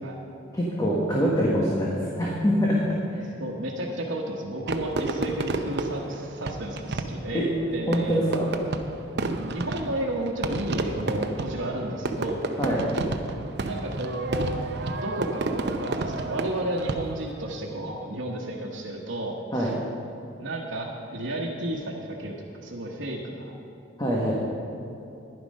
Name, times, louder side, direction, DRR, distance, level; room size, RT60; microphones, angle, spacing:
voice 1, 0.5-3.2 7.3-7.5 7.9-8.5 12.6-12.9 19.5-19.7 24.0-24.3, equal, 20° left, -4 dB, 1.4 m, -24 dB
voice 2, 3.2-8.2 9.4-12.4 13.6-14.6 15.0-19.7 20.4-23.6, right 1 dB, 85° right, -4 dB, 1.2 m, -32 dB
Fireworks, 4.7-17.4, right 3 dB, 55° right, 0.7 m, -31 dB
11.0 x 10.5 x 5.4 m, 2.9 s
head